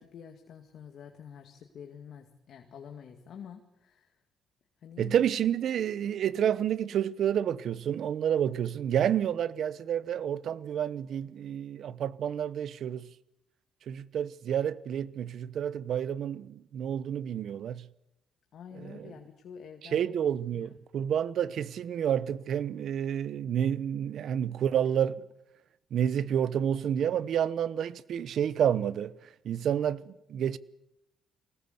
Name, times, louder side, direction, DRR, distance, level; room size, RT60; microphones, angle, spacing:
voice 1, 0.0-4.2 4.8-5.2 18.5-20.1 20.5-20.8, left 7 dB, 65° left, 2.2 m, -48 dB
voice 2, 5.0-13.1 13.9-17.9 18.8-19.1 19.9-25.2 25.9-29.1 29.4-30.6, right 9 dB, 65° right, 0.9 m, -29 dB
23.5 x 19.0 x 8.1 m
cardioid pair, 90°, 0 cm